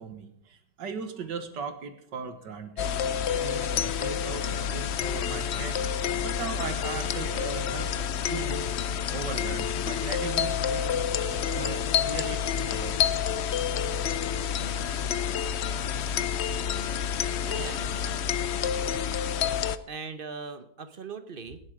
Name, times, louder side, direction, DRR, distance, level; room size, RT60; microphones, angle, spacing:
voice 1, 0.0-2.9 3.4-5.8 6.2-8.8 9.1-11.0 11.5-13.1, right 5 dB, 85° right, 9 dB, 2.0 m, -38 dB
sound 1, 2.8-19.8, left 8 dB, 75° left, 0.6 m, -29 dB
voice 2, 17.4-18.1 19.9-21.6, right 5 dB, 40° right, 10 dB, 1.0 m, -40 dB
18.0 x 7.5 x 4.9 m, 0.74 s
omnidirectional pair, 1.9 m